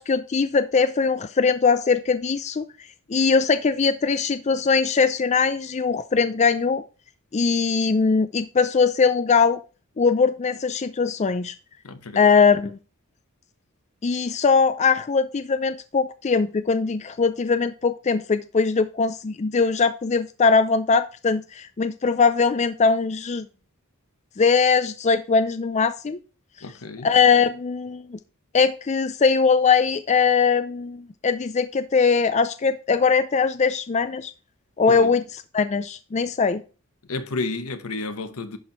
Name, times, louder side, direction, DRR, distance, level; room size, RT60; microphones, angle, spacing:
voice 1, 0.0-2.7 3.1-6.8 7.3-9.6 10.0-11.5 12.2-12.8 14.0-23.5 24.4-26.2 27.0-28.2 28.5-34.3 34.8-35.2 35.5-36.6, left 5 dB, 30° left, 0.4 m, -21 dB
voice 2, 11.8-12.3 26.6-27.1 34.9-35.2 37.1-38.6, left 3 dB, 80° left, 1.0 m, -31 dB
11.0 x 4.6 x 4.6 m
head